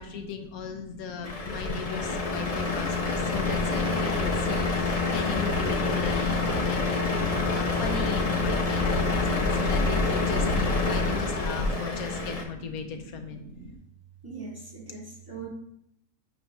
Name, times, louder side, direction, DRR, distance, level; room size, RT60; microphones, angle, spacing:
voice 1, 0.0-9.2 9.5-13.4, left 7 dB, 85° left, 6 dB, 1.2 m, -38 dB
voice 2, 0.5-0.9 1.2-1.7 2.1-2.2 2.6-2.8 3.2-3.4 5.5-5.8 11.0-11.4 11.8-12.3 12.9-13.7 14.2-15.5, right 2 dB, 15° right, -7 dB, 2.3 m, -44 dB
Truck, 1.2-12.4, left 3 dB, 35° left, 0.7 m, -26 dB
8.9 x 4.2 x 3.0 m, 0.75 s
omnidirectional pair, 1.5 m